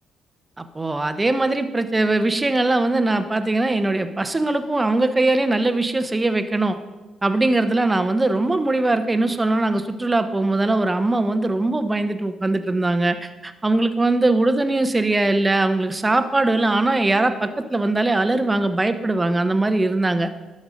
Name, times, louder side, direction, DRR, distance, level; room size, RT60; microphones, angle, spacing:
voice 1, 0.6-6.8 7.2-20.3, right 2 dB, 20° right, 10 dB, 0.8 m, -21 dB
11.0 x 5.3 x 6.3 m, 1.2 s
supercardioid pair, 60°, 0 cm